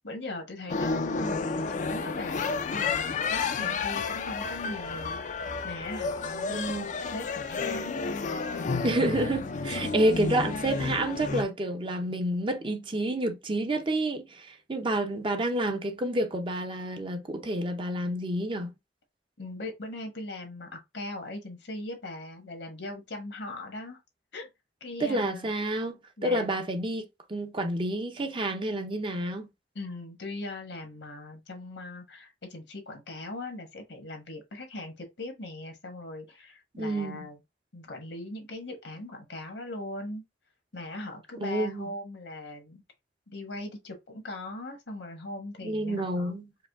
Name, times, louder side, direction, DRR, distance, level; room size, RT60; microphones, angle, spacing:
voice 1, 0.0-5.2 5.6-6.6 7.1-9.0 9.7-10.3 19.4-24.0 24.3-24.5 24.8-25.5 26.2-26.6 29.7-37.4 37.7-40.2 40.7-42.8 43.3-46.3, left 2 dB, 80° left, 1.4 m, -40 dB
sound 1, 0.7-11.4, left 4 dB, 45° left, 0.4 m, -31 dB
voice 2, 6.5-6.9 8.8-18.7 25.0-27.0 27.3-29.5 36.8-37.2 41.4-41.9 45.6-46.5, right 1 dB, 30° right, 0.6 m, -29 dB
4.8 x 2.1 x 3.5 m
head